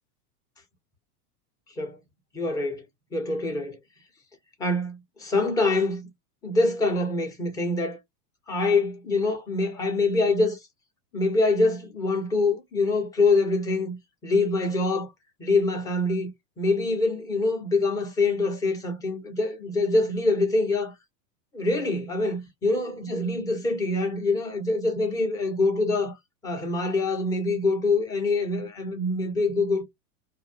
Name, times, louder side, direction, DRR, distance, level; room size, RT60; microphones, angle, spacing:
voice 1, 2.3-2.8 3.1-3.8 4.6-6.1 6.4-8.0 8.5-10.6 11.1-14.0 14.2-15.1 15.4-16.3 16.6-20.9 21.5-26.2 26.4-29.8, left 2 dB, 10° left, 0.4 m, -25 dB
2.6 x 2.1 x 2.4 m
supercardioid pair, 130°, 48 cm